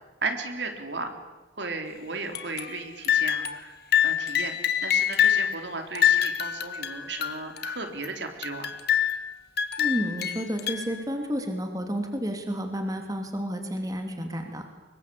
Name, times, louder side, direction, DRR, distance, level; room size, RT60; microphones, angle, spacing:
voice 1, 0.2-1.1 1.6-3.8 4.0-8.7, right 3 dB, 70° right, 5 dB, 3.7 m, -35 dB
sound 1, 2.3-2.8 3.0-3.7 3.9-5.5 5.9-8.1 8.4-9.3 9.6-11.0, left 10 dB, 60° left, 1.7 m, -25 dB
voice 2, 9.8-14.7, equal, 20° right, 5 dB, 2.8 m, -31 dB
25.5 x 22.5 x 8.6 m, 1.1 s
head